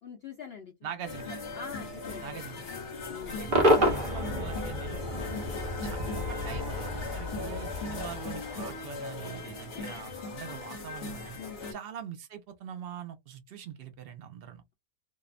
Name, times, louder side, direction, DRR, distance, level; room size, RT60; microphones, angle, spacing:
voice 1, 0.0-0.7 1.5-2.2 2.5-2.6 3.0-3.5 5.3-5.5 11.4-11.6, left 6 dB, 85° left, 0.5 m, -44 dB
voice 2, 0.8-1.4 2.2-2.6 3.4-5.2 5.8-11.4 11.7-14.6, right 8 dB, 80° right, 0.5 m, -43 dB
sound 1, 1.0-11.7, left 3 dB, 45° left, 1.1 m, -39 dB
Cheering / Crowd / Fireworks, 3.5-8.8, equal, 40° right, 0.8 m, -29 dB
2.7 x 2.0 x 2.4 m
omnidirectional pair, 1.7 m